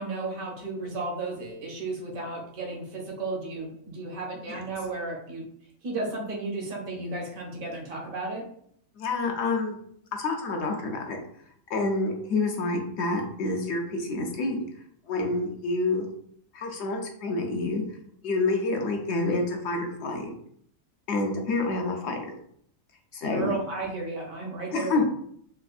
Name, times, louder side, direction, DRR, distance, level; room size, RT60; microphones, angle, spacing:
voice 1, 0.0-5.4 5.8-8.4 23.3-25.1, right 3 dB, 80° right, -1 dB, 1.3 m, -33 dB
voice 2, 9.0-9.8 10.1-11.2 11.7-14.7 15.1-16.1 16.5-17.8 18.2-20.3 21.1-22.4 23.1-23.6 24.7-25.0, left 3 dB, 65° left, 2 dB, 0.8 m, -28 dB
4.2 x 2.3 x 2.4 m, 0.66 s
omnidirectional pair, 1.4 m